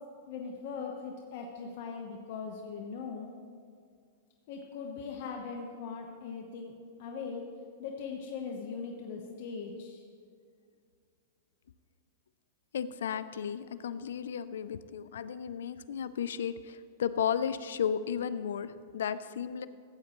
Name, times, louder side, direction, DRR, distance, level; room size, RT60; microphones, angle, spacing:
voice 1, 0.3-3.3 4.5-7.5 7.8-10.0, left 5 dB, 55° left, 1 dB, 1.0 m, -40 dB
voice 2, 12.7-19.7, left 8 dB, 85° left, 14 dB, 0.4 m, -34 dB
14.5 x 8.3 x 3.1 m, 2.2 s
hypercardioid pair, 135°, 0 cm